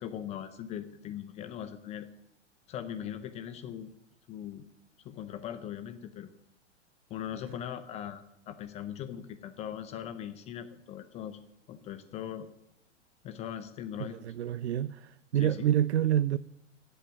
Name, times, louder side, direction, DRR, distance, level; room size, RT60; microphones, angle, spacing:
voice 1, 0.0-2.1 2.7-3.9 4.3-4.6 5.0-6.3 7.1-11.4 11.7-12.5 13.2-14.2 15.4-15.7, left 10 dB, 15° left, 10 dB, 0.6 m, -40 dB
voice 2, 14.0-16.4, right 11 dB, 60° right, 17 dB, 0.5 m, -28 dB
16.5 x 7.9 x 7.3 m, 0.81 s
figure-of-eight pair, 105°, 38 cm